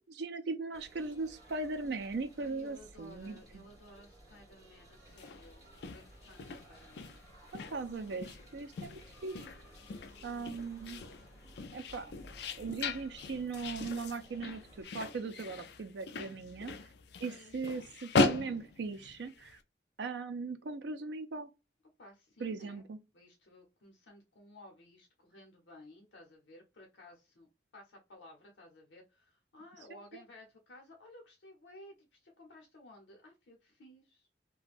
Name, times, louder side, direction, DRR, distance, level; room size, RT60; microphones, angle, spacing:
voice 1, 0.0-3.7 7.5-9.4 10.2-11.0 11.7-12.1 12.6-16.9 17.2-19.6 20.0-21.5 22.4-23.0, right 4 dB, 70° right, 0.4 m, -39 dB
sound 1, 0.7-14.8, right 1 dB, 20° right, 1.3 m, -57 dB
voice 2, 2.4-7.2 7.7-8.0 10.0-10.6 17.2-17.6 22.0-22.8 23.1-27.5 27.7-34.3, left 1 dB, 85° left, 0.7 m, -56 dB
sound 2, 5.1-19.5, left 3 dB, 65° left, 0.3 m, -38 dB
2.4 x 2.2 x 3.3 m
head